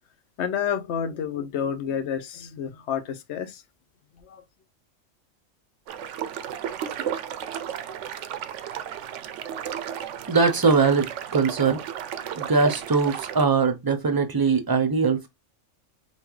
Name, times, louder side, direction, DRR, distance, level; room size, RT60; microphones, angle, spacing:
voice 1, 0.4-3.6 4.2-4.4, left 8 dB, 65° left, 0.9 m, -29 dB
sound 1, 5.9-13.5, right 9 dB, 75° right, 0.9 m, -33 dB
voice 2, 10.3-11.8 12.3-15.3, right 4 dB, 25° right, 0.5 m, -21 dB
5.6 x 2.3 x 3.1 m
omnidirectional pair, 1.3 m